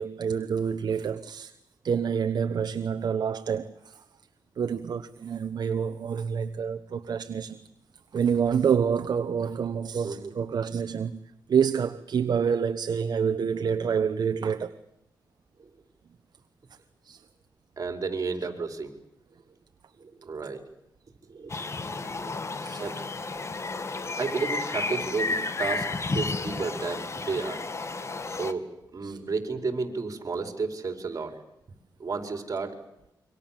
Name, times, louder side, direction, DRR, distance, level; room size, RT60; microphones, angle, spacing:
voice 1, 0.0-1.5 1.8-3.9 4.6-7.6 8.1-11.2 11.5-14.7 17.1-17.2 22.6-22.8 29.0-29.2, right 7 dB, 65° right, 1.1 m, -27 dB
voice 2, 17.8-18.9 20.0-20.6 21.3-21.6 22.2-22.4 22.8-23.0 24.2-27.6 28.3-31.4 32.0-32.8, right 4 dB, 45° right, 4.8 m, -32 dB
sound 1, 21.5-28.5, left 3 dB, 40° left, 2.0 m, -32 dB
27.5 x 24.5 x 7.6 m
cardioid pair, 90°, 8 cm